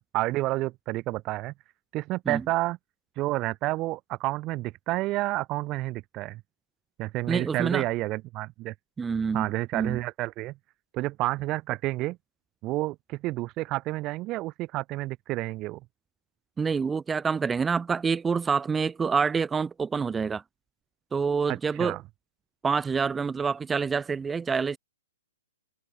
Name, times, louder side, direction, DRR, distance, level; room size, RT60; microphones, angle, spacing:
voice 1, 0.0-1.5 1.9-2.8 3.2-6.4 7.0-8.7 9.3-10.5 10.9-12.2 12.6-15.8 21.5-22.0, right 18 dB, 25° right, 2.7 m, -30 dB
voice 2, 7.3-7.8 9.0-10.0 16.6-20.4 21.1-22.0 22.6-24.8, right 5 dB, 10° right, 0.8 m, -27 dB
hypercardioid pair, 150°, 0 cm